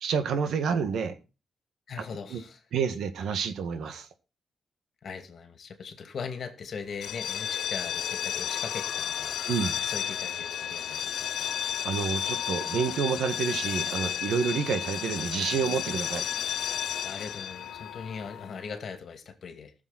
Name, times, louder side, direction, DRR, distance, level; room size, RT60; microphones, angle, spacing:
voice 1, 0.0-1.1 2.3-2.4 2.7-4.1 9.5-9.8 11.8-16.3, right 6 dB, 90° right, 9 dB, 1.6 m, -29 dB
voice 2, 1.9-2.6 5.0-9.3 9.8-11.5 17.0-19.7, left 6 dB, 55° left, 8 dB, 2.3 m, -40 dB
sound 1, 6.9-18.6, left 9 dB, 85° left, 0.6 m, -32 dB
19.5 x 7.1 x 4.1 m, 0.31 s
wide cardioid pair, 140°, 0 cm